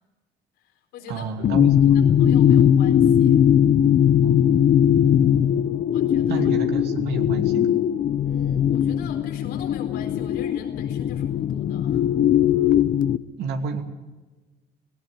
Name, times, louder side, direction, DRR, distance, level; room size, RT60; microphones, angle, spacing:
voice 1, 0.6-3.4 5.9-6.5 8.2-12.1, left 6 dB, 90° left, 3 dB, 4.3 m, -43 dB
voice 2, 1.1-2.0 4.2-4.6 6.3-7.8 13.4-13.8, right 4 dB, 80° right, 4 dB, 2.8 m, -30 dB
sound 1, 1.4-13.2, left 9 dB, 55° left, 0.8 m, -19 dB
18.0 x 18.0 x 9.0 m, 1.2 s
cardioid pair, 110°, 17 cm